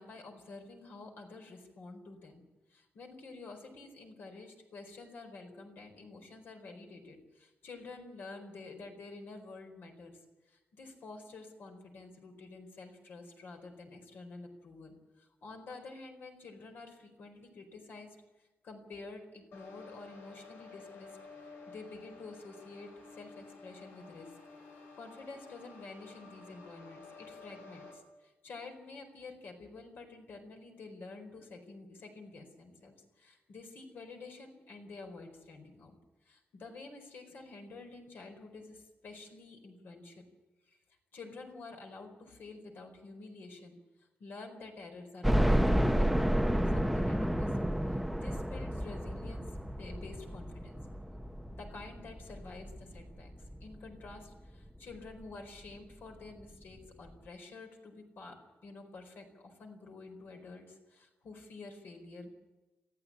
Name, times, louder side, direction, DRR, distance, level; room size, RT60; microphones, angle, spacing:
voice 1, 0.0-2.4 2.7-10.2 10.5-24.3 24.7-36.0 36.2-40.2 40.7-40.8 41.1-47.6 47.9-50.8 51.5-53.3 53.6-62.3, left 3 dB, 65° left, 5 dB, 4.4 m, -49 dB
sound 1, 19.5-27.9, left 4 dB, 85° left, 6.9 m, -52 dB
sound 2, 45.2-54.1 54.6-54.7 55.1-55.2 56.4-56.5 56.8-56.9, equal, ahead, 0.6 m, -31 dB
18.5 x 15.0 x 9.9 m, 1.1 s
wide cardioid pair, 170°, 4 cm